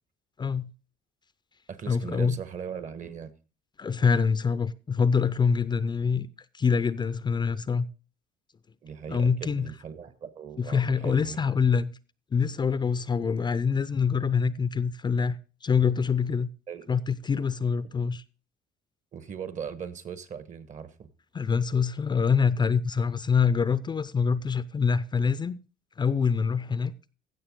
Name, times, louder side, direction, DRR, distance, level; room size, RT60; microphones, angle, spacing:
voice 1, 0.4-0.7 1.9-2.4 3.8-6.3 6.5-7.9 9.1-9.7 10.6-12.0 12.3-16.5 16.9-18.2 21.3-25.6 26.0-26.9, left 6 dB, 25° left, 0.5 m, -25 dB
voice 2, 1.7-3.3 8.8-11.4 16.7-17.0 19.1-21.1, right 7 dB, 45° right, 1.3 m, -39 dB
15.5 x 6.7 x 3.7 m
cardioid pair, 110°, 17 cm